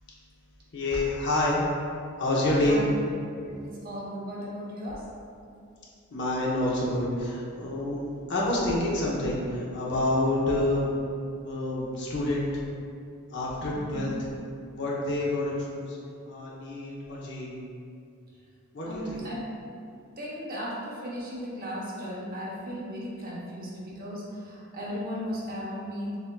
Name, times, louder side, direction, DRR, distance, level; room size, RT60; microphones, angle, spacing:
voice 1, 0.7-1.6 2.2-2.8 6.1-8.0 8.3-10.9 11.4-12.5 13.3-14.1 14.7-16.0 16.3-17.6 18.7-19.2, left 1 dB, 55° left, -5 dB, 0.8 m, -28 dB
voice 2, 3.4-5.0 13.7-14.1 18.8-19.5 20.2-26.2, equal, 40° right, -6 dB, 0.9 m, -36 dB
6.6 x 2.5 x 2.2 m, 2.4 s
head